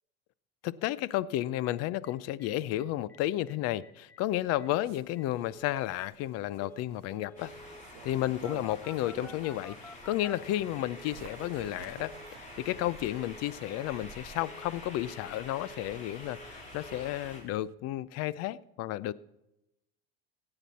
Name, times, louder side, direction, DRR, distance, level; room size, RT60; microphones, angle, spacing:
voice 1, 0.6-7.5 8.0-12.1 12.6-19.1, left 14 dB, 55° left, 19 dB, 0.6 m, -32 dB
Telephone, 1.7-1.8 2.0-2.1 2.4-2.5 2.8-3.2 3.5-3.6 3.8-4.2 4.6-4.7 5.2-5.8 6.6-6.8 7.1-7.8 8.4-11.1 11.4-11.7 12.0-12.3 12.6-12.9 13.2-13.5 13.8-14.1 14.4-14.7 15.0-15.9 16.2-16.5 16.8-17.1, left 1 dB, 5° left, 0.4 m, -51 dB
Bird, 4.2-9.6 10.1-17.7, right 13 dB, 80° right, 0.8 m, -55 dB
sound 1, 7.4-17.4, left 1 dB, 25° left, 4.5 m, -48 dB
16.5 x 8.9 x 4.2 m, 0.89 s
supercardioid pair, 115°, 30 cm